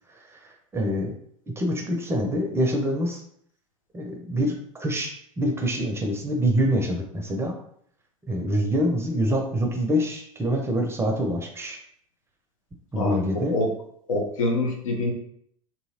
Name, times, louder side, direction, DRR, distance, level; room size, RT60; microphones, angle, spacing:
voice 1, 0.7-1.1 1.6-3.2 3.9-7.5 8.3-11.8 12.9-13.5, equal, 15° right, 2 dB, 0.5 m, -25 dB
voice 2, 13.0-13.7 14.1-15.1, left 1 dB, 70° left, 1 dB, 0.7 m, -26 dB
2.8 x 2.7 x 2.7 m, 0.66 s
figure-of-eight pair, 80°, 17 cm